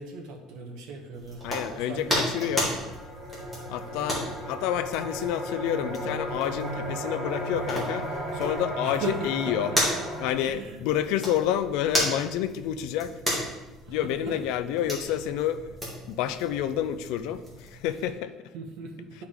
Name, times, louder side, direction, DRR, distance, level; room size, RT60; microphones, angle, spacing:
voice 1, 0.0-1.5 1.7-2.5 3.8-4.0 8.8-9.5 10.4-10.8 13.9-14.4 15.0-15.1 18.5-19.2, right 4 dB, 70° right, 2 dB, 1.2 m, -38 dB
sound 1, 1.1-18.1, equal, 10° right, 2.1 m, -34 dB
voice 2, 1.4-2.7 3.7-9.7 10.2-13.2 13.9-15.8 16.1-18.5, left 10 dB, 75° left, 11 dB, 0.5 m, -29 dB
sound 2, 1.4-1.5 1.9-10.3, equal, 25° right, 1.9 m, -35 dB
10.5 x 4.7 x 3.7 m, 1.1 s
cardioid pair, 165°, 0 cm